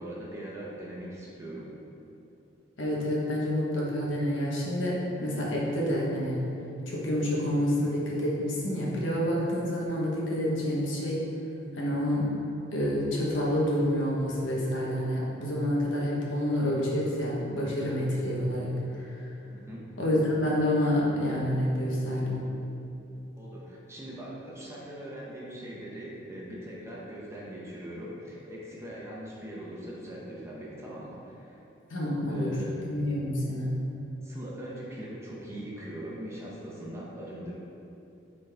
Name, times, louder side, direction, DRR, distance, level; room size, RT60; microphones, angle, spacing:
voice 1, 0.0-1.7 19.5-19.9 23.4-31.6 32.3-32.8 34.2-37.5, right 1 dB, 15° right, -6 dB, 1.0 m, -41 dB
voice 2, 2.8-6.5 6.9-11.2 11.7-12.3 12.7-19.3 20.0-22.5 31.9-32.6 32.8-33.8, equal, 85° left, -5 dB, 1.3 m, -28 dB
7.4 x 4.2 x 3.5 m, 2.8 s
head